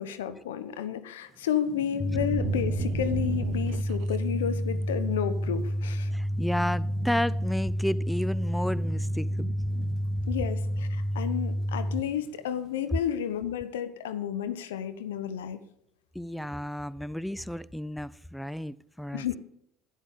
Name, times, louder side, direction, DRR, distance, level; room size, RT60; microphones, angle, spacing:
voice 1, 0.0-6.1 10.3-15.6 19.1-19.4, left 9 dB, 90° left, 0.8 m, -31 dB
Thunderstorm / Rain, 1.2-13.5, right 4 dB, 30° right, 2.4 m, -47 dB
sound 1, 2.0-12.0, equal, 25° left, 0.8 m, -30 dB
sound 2, 2.1-4.2 4.6-5.0, right 15 dB, 70° right, 0.4 m, -35 dB
voice 2, 6.1-9.5 16.2-19.3, left 1 dB, 5° left, 0.4 m, -32 dB
12.0 x 10.0 x 3.6 m
hypercardioid pair, 75°, 0 cm